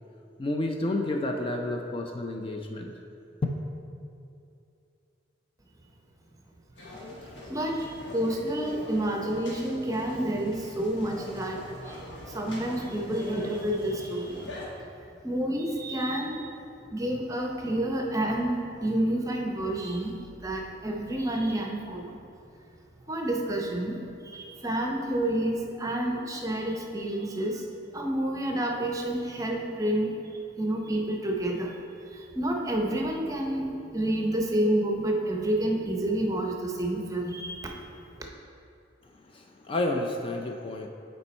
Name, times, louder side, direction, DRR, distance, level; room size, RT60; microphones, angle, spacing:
voice 1, 0.4-2.9 39.1-40.9, left 2 dB, 30° left, 2 dB, 0.4 m, -30 dB
sound 1, 6.8-14.7, left 2 dB, 80° left, 1.3 m, -42 dB
voice 2, 7.5-12.0 12.2-14.6 15.2-16.5 16.9-20.1 20.4-22.1 23.1-24.0 24.2-27.6 27.9-30.2 30.6-31.8 32.1-37.8, right 1 dB, 20° right, 1 dB, 0.6 m, -29 dB
7.0 x 4.4 x 4.2 m, 2.6 s
head